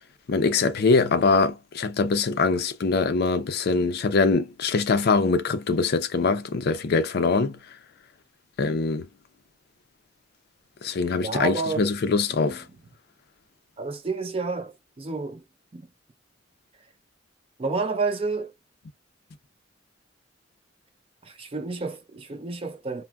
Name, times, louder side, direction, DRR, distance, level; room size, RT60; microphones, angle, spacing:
voice 1, 0.3-7.6 8.6-9.1 10.8-12.6, left 4 dB, 55° left, 0.4 m, -23 dB
voice 2, 11.2-11.9 12.5-12.6 13.8-15.4 15.7-15.9 17.6-18.5 21.2-23.0, right 4 dB, 30° right, 0.5 m, -30 dB
3.4 x 2.1 x 2.2 m
head